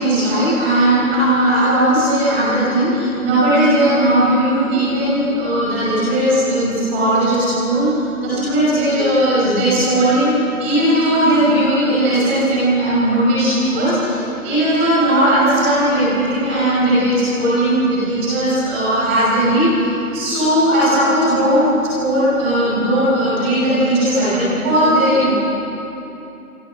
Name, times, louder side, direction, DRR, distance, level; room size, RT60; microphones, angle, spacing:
voice 1, 0.0-25.3, right 1 dB, 10° right, -9 dB, 5.9 m, -17 dB
26.5 x 25.0 x 7.7 m, 3.0 s
figure-of-eight pair, 170°, 44 cm